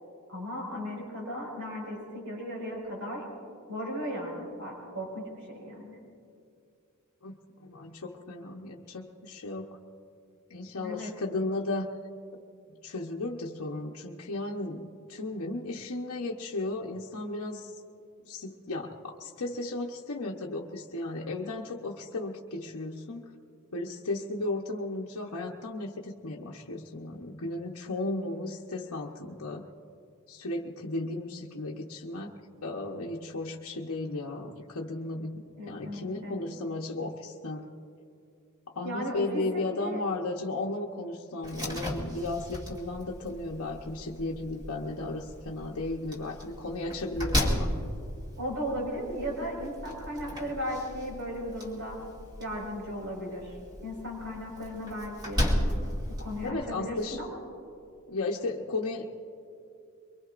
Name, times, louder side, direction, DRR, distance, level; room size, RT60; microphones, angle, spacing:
voice 1, 0.3-3.2 3.7-6.0 10.8-11.1 35.6-36.4 38.8-40.0 48.4-52.0 52.4-53.5 53.8-55.7 56.2-57.4, equal, 70° right, -2 dB, 5.1 m, -36 dB
voice 2, 7.2-9.8 10.5-11.9 12.8-17.7 18.2-23.3 23.7-29.6 30.3-37.7 38.7-47.7 56.4-57.2 58.1-59.1, left 2 dB, 80° left, -1 dB, 0.9 m, -35 dB
Slam, 41.4-56.5, equal, 20° right, 2.3 m, -35 dB
24.0 x 23.5 x 2.5 m, 2.4 s
head